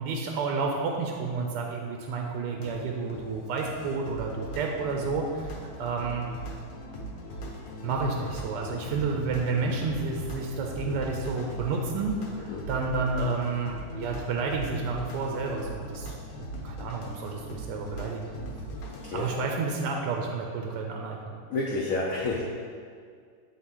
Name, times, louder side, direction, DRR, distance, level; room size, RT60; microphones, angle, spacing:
voice 1, 0.0-6.3 7.8-18.3 19.1-21.4, right 4 dB, 75° right, 1 dB, 1.1 m, -30 dB
sound 1, 2.5-19.4, equal, 60° left, 1.0 m, -40 dB
voice 2, 12.4-12.7 19.0-19.3 21.5-22.4, left 2 dB, 85° left, -2 dB, 0.7 m, -30 dB
8.7 x 3.6 x 3.7 m, 2.1 s
omnidirectional pair, 2.2 m